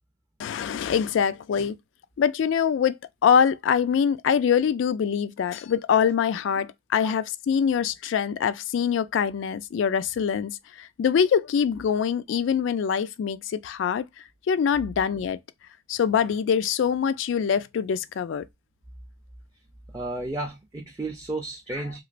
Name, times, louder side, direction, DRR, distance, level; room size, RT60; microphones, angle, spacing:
voice 1, 0.4-1.8 2.2-14.0 14.5-15.4 15.9-18.4, left 7 dB, 80° left, 0.3 m, -24 dB
voice 2, 19.9-22.0, right 2 dB, 15° right, 0.4 m, -32 dB
3.0 x 2.9 x 2.4 m
head